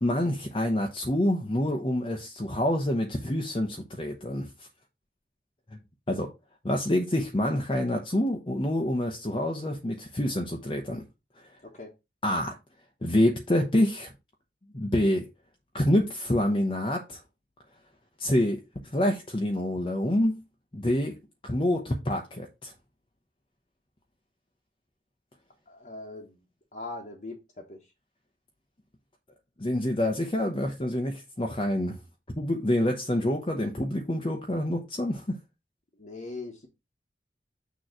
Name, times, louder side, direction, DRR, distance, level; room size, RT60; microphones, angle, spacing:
voice 1, 0.0-4.7 6.1-6.3 6.6-11.0 12.2-12.6 13.0-14.1 14.7-15.3 15.7-17.2 18.2-18.6 18.9-20.4 20.7-21.2 21.4-22.7 29.6-32.0 32.4-35.4, left 1 dB, 30° left, 0.8 m, -27 dB
voice 2, 25.7-26.4 26.7-27.4 27.7-27.8 36.0-36.7, left 2 dB, 45° left, 1.2 m, -40 dB
6.5 x 3.1 x 5.9 m
head